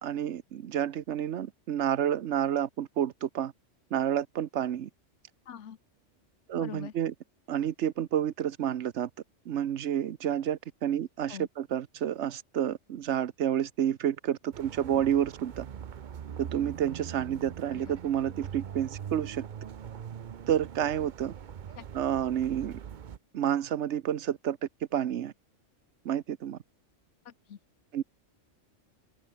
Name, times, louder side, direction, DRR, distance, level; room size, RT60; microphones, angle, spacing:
voice 1, 0.0-3.5 3.9-4.9 6.5-7.1 7.5-9.1 9.5-15.7 16.4-19.4 20.5-21.3 21.9-22.8 23.3-24.6 24.9-25.3 26.0-26.6 27.9-28.0, right 10 dB, 70° right, 1.1 m, -29 dB
voice 2, 5.5-5.8 6.5-6.9 11.3-11.5 14.9-15.0 17.7-18.0 21.8-21.9 27.2-27.6, left 8 dB, 70° left, 1.3 m, -43 dB
sound 1, 14.5-23.2, right 8 dB, 50° right, 0.7 m, -42 dB
open air
omnidirectional pair, 1.3 m